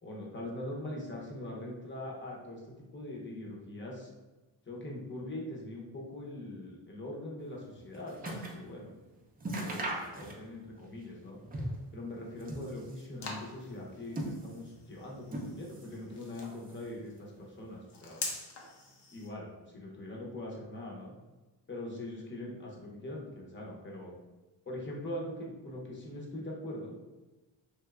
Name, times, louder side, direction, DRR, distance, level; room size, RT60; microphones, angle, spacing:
voice 1, 0.0-4.1 4.7-9.0 9.5-9.9 10.1-11.4 11.9-18.3 19.1-21.1 21.7-24.1 24.7-27.0, left 1 dB, 25° left, -2 dB, 0.8 m, -42 dB
sound 1, 7.5-8.7 9.0-9.1 9.4-10.7 11.0-11.9 12.3-13.2 13.8-14.8 15.3-16.0 16.3-17.0 17.7-17.8, right 1 dB, 20° right, 0.5 m, -39 dB
sound 2, 12.1-19.3, left 3 dB, 65° left, 0.7 m, -45 dB
3.3 x 2.8 x 2.3 m, 1.2 s
cardioid pair, 105°, 45 cm